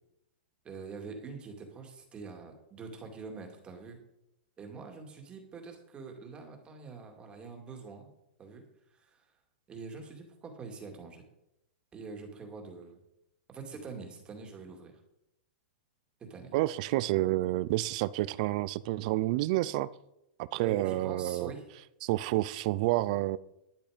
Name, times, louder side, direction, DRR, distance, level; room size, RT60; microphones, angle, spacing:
voice 1, 0.6-4.0 4.6-8.1 8.4-8.6 8.9-9.3 9.7-11.2 11.9-13.0 13.5-15.0 16.2-16.5 20.6-21.6, right 4 dB, 20° right, 3 dB, 2.3 m, -44 dB
voice 2, 16.5-19.9 20.4-21.5 22.0-23.4, right 17 dB, 45° right, 19 dB, 0.5 m, -29 dB
12.0 x 8.9 x 5.1 m, 0.85 s
hypercardioid pair, 150°, 6 cm